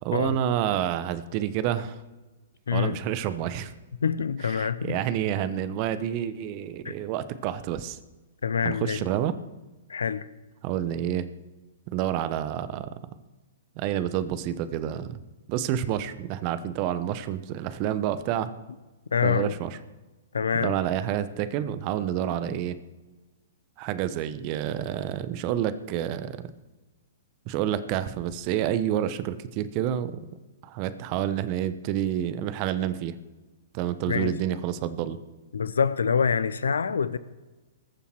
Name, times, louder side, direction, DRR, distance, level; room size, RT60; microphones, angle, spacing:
voice 1, 0.0-2.0 2.7-3.7 4.6-8.0 8.6-9.3 10.6-11.3 11.9-12.9 13.8-15.2 15.5-18.5 19.2-19.8 20.5-22.7 23.8-26.4 27.5-30.2 30.6-33.1 33.7-35.2, right 11 dB, 35° right, 1.0 m, -28 dB
voice 2, 2.7-3.0 4.0-5.0 6.8-7.0 8.4-9.0 9.9-10.3 19.1-19.6 20.3-20.8 34.1-34.3 35.5-37.2, left 6 dB, 70° left, 0.7 m, -26 dB
21.0 x 7.0 x 4.6 m
figure-of-eight pair, 110°, 0 cm